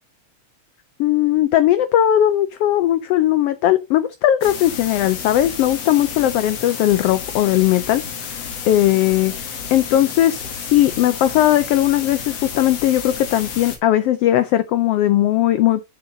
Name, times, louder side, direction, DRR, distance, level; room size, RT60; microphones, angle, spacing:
voice 1, 1.0-15.8, left 12 dB, 85° left, 1.3 m, -18 dB
sound 1, 4.4-13.8, left 7 dB, 60° left, 2.5 m, -31 dB
7.7 x 6.7 x 2.7 m
omnidirectional pair, 3.3 m